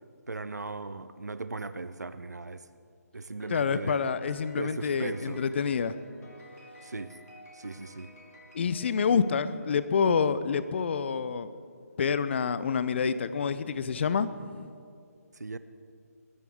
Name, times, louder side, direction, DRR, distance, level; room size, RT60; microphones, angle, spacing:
voice 1, 0.3-2.7 3.1-4.1 4.5-5.5 6.8-7.2 7.5-8.1 15.3-15.6, right 3 dB, 85° right, 13 dB, 0.6 m, -38 dB
Piano, 3.4-9.9, left 1 dB, 75° left, 3.6 m, -53 dB
voice 2, 3.5-5.9 8.5-11.5 12.0-14.7, left 6 dB, 45° left, 14 dB, 0.7 m, -27 dB
22.5 x 13.5 x 3.7 m, 2.3 s
figure-of-eight pair, 150°, 9 cm